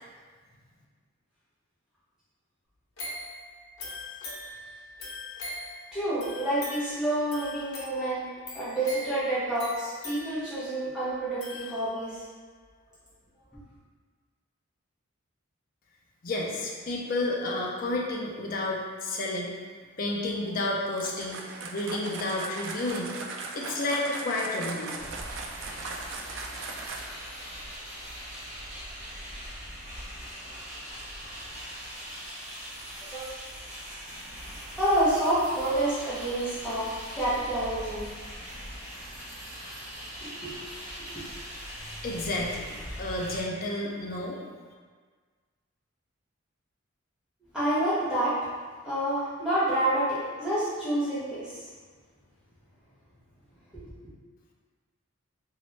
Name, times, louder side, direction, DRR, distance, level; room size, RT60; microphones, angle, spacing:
sound 1, 3.0-12.2 12.7-12.8, left 1 dB, 80° left, 0.9 m, -42 dB
voice 1, 5.9-8.3 8.5-12.1 33.1-33.2 34.8-38.1 40.2-40.5 41.0-41.2 47.5-48.4 48.8-51.6 53.7-53.9, right 1 dB, 5° right, -12 dB, 1.0 m, -28 dB
voice 2, 16.2-19.5 20.0-23.1 23.5-25.0 42.0-44.4, left 2 dB, 40° left, -3 dB, 0.5 m, -31 dB
sound 2, 20.9-27.3, right 3 dB, 65° right, 0.4 m, -38 dB
sound 3, 25.0-43.4, equal, 35° right, 1.0 m, -41 dB
3.0 x 2.8 x 3.1 m, 1.5 s
head